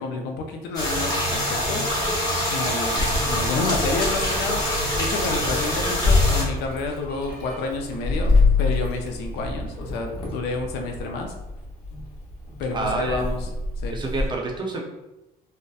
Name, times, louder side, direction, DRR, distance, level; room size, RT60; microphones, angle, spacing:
voice 1, 0.0-2.0 2.5-11.3 12.6-13.5 13.8-14.0, left 3 dB, 85° left, 3 dB, 0.4 m, -30 dB
sound 1, 0.7-6.4, equal, 20° left, 1.0 m, -25 dB
Meow, 3.0-14.3, left 3 dB, 60° left, 0.8 m, -26 dB
voice 2, 12.7-13.2 13.9-14.8, right 2 dB, 25° right, 0 dB, 0.5 m, -27 dB
2.7 x 2.1 x 2.3 m, 0.97 s
cardioid pair, 110°, 17 cm